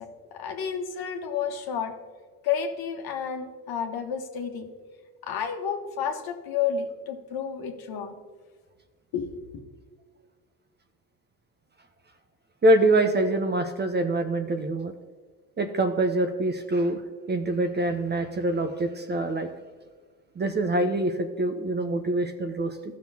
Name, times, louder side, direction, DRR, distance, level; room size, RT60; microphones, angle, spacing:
voice 1, 0.0-2.0 2.4-4.7 5.2-8.1 9.1-9.6, left 7 dB, 55° left, 4 dB, 1.4 m, -31 dB
voice 2, 12.6-14.9 15.6-17.0 17.3-19.5 20.4-22.8, right 1 dB, 25° right, 7 dB, 0.8 m, -25 dB
15.0 x 6.3 x 2.8 m, 1.5 s
hypercardioid pair, 65°, 45 cm